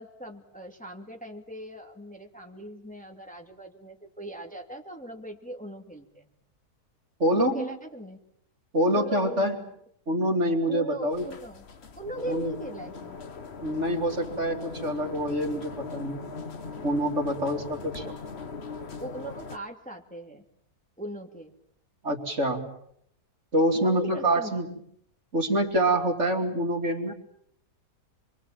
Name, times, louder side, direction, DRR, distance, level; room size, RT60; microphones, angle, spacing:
voice 1, 0.0-6.3 7.3-8.2 8.9-9.6 10.7-11.7 12.0-13.2 18.0-18.1 19.0-20.5 21.0-21.5 23.7-24.6, right 1 dB, 5° left, 1 dB, 2.5 m, -39 dB
voice 2, 7.2-7.7 8.7-9.6 10.1-11.2 12.3-12.5 13.6-16.3 16.8-18.1 22.0-22.7 23.5-24.7 25.3-27.1, right 1 dB, 45° right, 3 dB, 3.1 m, -26 dB
sound 1, 11.1-19.6, left 4 dB, 45° left, 1.5 m, -40 dB
27.0 x 23.5 x 7.5 m, 0.71 s
omnidirectional pair, 1.7 m